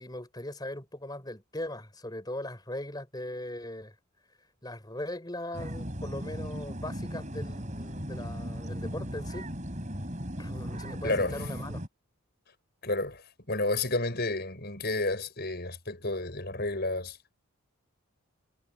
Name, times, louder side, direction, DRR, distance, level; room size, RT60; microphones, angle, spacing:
voice 1, 0.0-3.9 4.6-9.5 10.4-11.8, left 1 dB, 20° left, 4.7 m, -39 dB
sound 1, 5.5-11.9, equal, 30° right, 7.8 m, -37 dB
voice 2, 11.0-11.4 12.8-13.2 13.5-17.2, left 2 dB, 45° left, 7.0 m, -30 dB
head